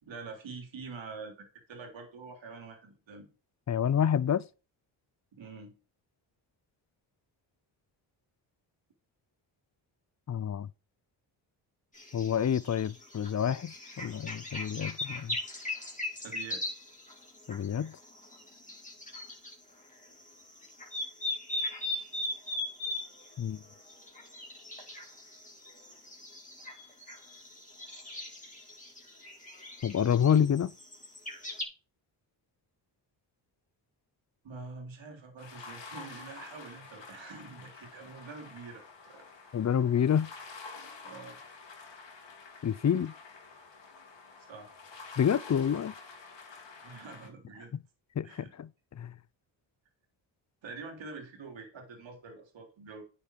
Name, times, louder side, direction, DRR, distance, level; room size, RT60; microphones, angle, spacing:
voice 1, 0.0-3.3 5.3-5.7 16.1-16.6 34.4-39.3 41.0-41.4 44.5-44.7 46.8-47.7 48.2-48.5 50.6-53.0, right 4 dB, 70° right, 3.4 m, -46 dB
voice 2, 3.7-4.4 10.3-10.7 12.1-15.4 17.5-18.0 23.4-23.6 29.8-30.7 39.5-40.3 42.6-43.1 45.2-45.9 48.2-49.1, left 8 dB, 35° left, 0.6 m, -28 dB
sound 1, 11.9-19.5 19.9-31.6, left 2 dB, 15° left, 3.9 m, -40 dB
sound 2, 35.4-47.3, left 4 dB, 65° left, 3.1 m, -49 dB
9.5 x 7.1 x 4.6 m
cardioid pair, 60°, 48 cm